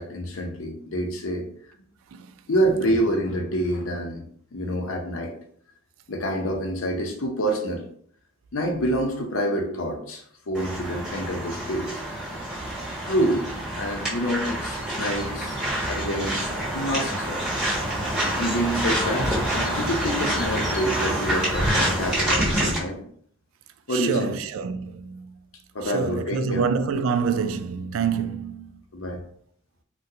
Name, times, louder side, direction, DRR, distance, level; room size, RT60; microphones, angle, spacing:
voice 1, 0.0-1.5 2.5-4.2 4.5-5.4 6.1-7.9 8.5-12.0 13.1-15.6 15.9-16.4 16.7-17.4 18.4-23.0 23.9-24.3 25.7-26.7 28.9-29.2, equal, 80° left, 0.7 m, -27 dB
sound 1, 10.5-22.8, right 1 dB, 5° right, 1.2 m, -27 dB
sound 2, 19.1-20.1, equal, 35° left, 0.8 m, -33 dB
voice 2, 23.9-25.3 25.8-28.8, right 6 dB, 75° right, 0.3 m, -27 dB
3.8 x 2.2 x 2.7 m
head